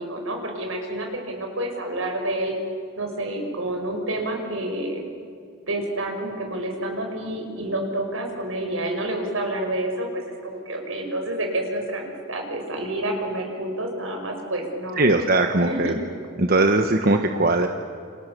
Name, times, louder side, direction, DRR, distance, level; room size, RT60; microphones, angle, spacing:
voice 1, 0.0-2.6 3.0-5.0 5.7-15.0 15.6-15.9, right 1 dB, 75° right, 2 dB, 6.1 m, -29 dB
voice 2, 15.0-15.9 16.4-17.7, right 2 dB, 45° right, 5 dB, 1.3 m, -20 dB
29.5 x 28.0 x 6.9 m, 2.3 s
head